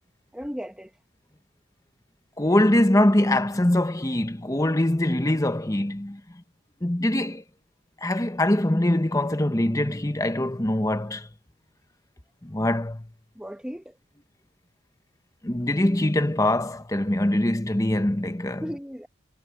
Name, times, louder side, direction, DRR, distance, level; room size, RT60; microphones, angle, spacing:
voice 1, 0.3-0.9 13.3-14.0 18.6-19.1, equal, 5° right, 1.2 m, -35 dB
voice 2, 2.4-6.4 6.8-7.4 8.0-11.3 12.4-13.1 15.4-18.6, left 1 dB, 15° left, 0.9 m, -23 dB
head